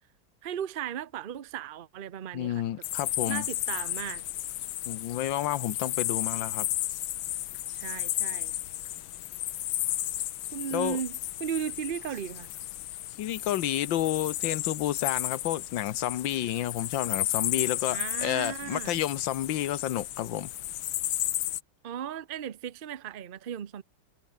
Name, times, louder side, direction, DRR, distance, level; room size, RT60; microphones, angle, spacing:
voice 1, 0.4-2.6 3.3-4.2 7.7-8.5 10.5-12.5 17.9-19.0 21.8-23.8, right 9 dB, 80° right, 0.4 m, -36 dB
voice 2, 2.3-3.5 4.9-6.7 10.7-11.0 13.2-20.5, left 12 dB, 70° left, 1.7 m, -30 dB
sound 1, 2.8-21.6, left 14 dB, 90° left, 1.7 m, -33 dB
omnidirectional pair, 2.2 m